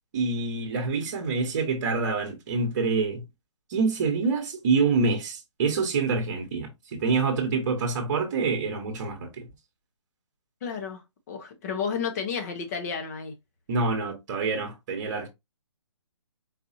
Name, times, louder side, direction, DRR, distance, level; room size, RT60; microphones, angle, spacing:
voice 1, 0.1-3.3 3.7-9.5 13.7-15.3, right 4 dB, 40° right, 1.2 m, -26 dB
voice 2, 10.6-11.0 11.3-13.3, left 6 dB, 35° left, 0.9 m, -31 dB
4.2 x 2.6 x 2.7 m
hypercardioid pair, 150°, 16 cm